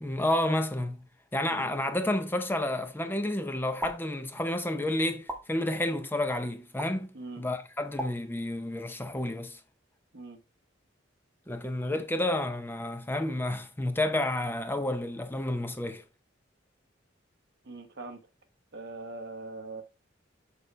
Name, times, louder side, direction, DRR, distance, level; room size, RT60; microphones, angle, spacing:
voice 1, 0.0-1.1 1.3-7.1 7.4-9.6 11.5-16.0, left 1 dB, 10° left, 0.6 m, -30 dB
sound 1, 3.8-3.9 5.3-5.4 6.8-6.9 8.0-8.1, equal, 5° right, 1.4 m, -34 dB
voice 2, 17.6-18.2 18.7-19.8, right 3 dB, 60° right, 1.1 m, -41 dB
6.5 x 5.4 x 3.2 m
head